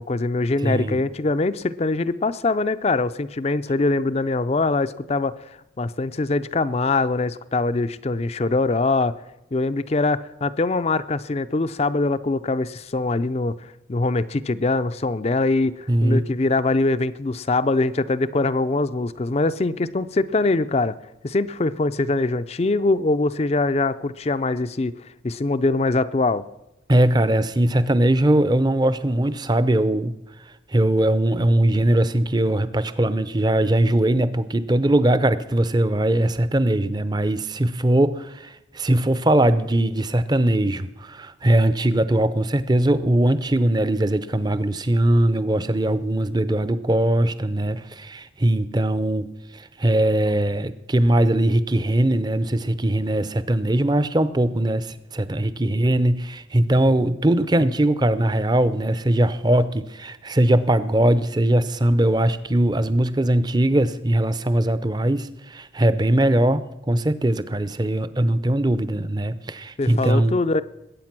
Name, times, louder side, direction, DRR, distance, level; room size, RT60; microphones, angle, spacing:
voice 1, 0.0-5.3 5.8-9.1 9.5-21.0 21.2-24.9 25.2-26.4 69.8-70.6, left 3 dB, 35° left, 13 dB, 0.4 m, -23 dB
voice 2, 0.6-1.0 15.9-16.2 26.9-30.1 30.7-66.6 66.9-70.4, right 1 dB, 20° right, 14 dB, 0.6 m, -20 dB
21.0 x 8.8 x 6.0 m, 0.93 s
head